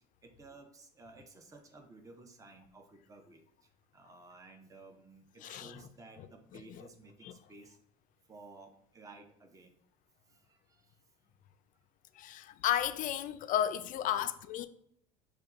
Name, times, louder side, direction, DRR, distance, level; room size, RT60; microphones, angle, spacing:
voice 1, 0.2-3.4 3.9-7.8 8.3-9.7 10.3-11.0, right 3 dB, 15° right, 0.7 m, -55 dB
voice 2, 5.4-5.8 6.5-6.9 7.2-7.3 12.2-14.7, left 11 dB, 45° left, 0.4 m, -33 dB
6.4 x 2.3 x 2.4 m
hypercardioid pair, 85°, 19 cm